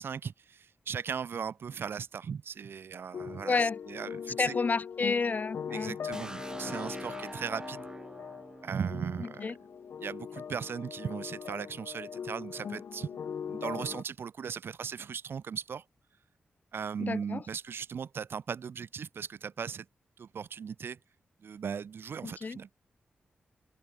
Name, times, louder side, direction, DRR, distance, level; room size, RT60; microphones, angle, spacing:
voice 1, 0.0-4.6 5.7-7.9 8.6-9.6 10.0-13.2 13.4-15.8 16.7-19.9 20.2-21.0 21.4-22.7, right 6 dB, 75° right, 3.8 m, -38 dB
sound 1, 3.1-14.0, left 7 dB, 80° left, 1.4 m, -41 dB
voice 2, 3.4-3.8 4.4-6.0 9.4-9.5 17.0-17.4 22.2-22.6, left 4 dB, 45° left, 1.2 m, -30 dB
sound 2, 6.1-9.9, right 2 dB, 20° right, 1.2 m, -44 dB
cardioid pair, 80°, 4 cm